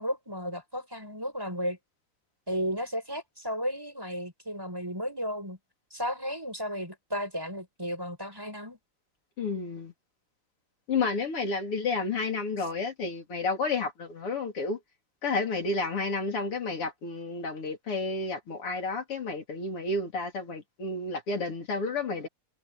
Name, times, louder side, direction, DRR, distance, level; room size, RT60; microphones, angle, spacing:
voice 1, 0.0-1.8 2.5-5.6 5.9-8.8 12.6-12.7, equal, 10° right, 6.1 m, -34 dB
voice 2, 9.4-9.9 10.9-14.8 15.2-22.3, left 3 dB, 85° left, 4.6 m, -31 dB
omnidirectional pair, 2.4 m